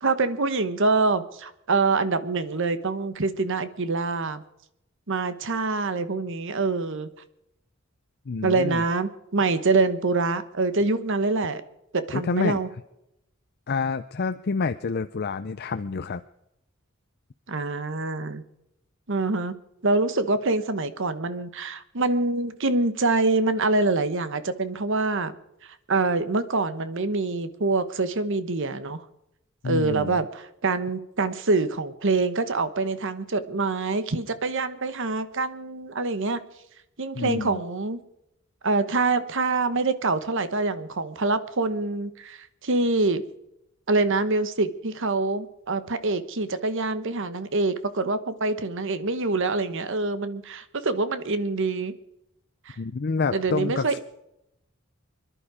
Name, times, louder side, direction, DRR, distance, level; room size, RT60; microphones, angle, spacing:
voice 1, 0.0-4.4 5.1-7.1 8.4-11.6 11.9-12.7 17.5-18.4 19.1-19.5 19.8-25.3 25.6-29.0 29.6-36.4 37.0-38.0 38.6-43.2 43.9-51.9 52.7-52.8 53.3-54.0, right 3 dB, 60° right, 13 dB, 1.1 m, -25 dB
voice 2, 8.3-8.8 12.1-12.6 13.7-16.2 29.6-30.2 37.1-37.6 52.8-54.0, left 4 dB, 50° left, 10 dB, 0.5 m, -28 dB
25.5 x 11.0 x 5.0 m, 0.84 s
head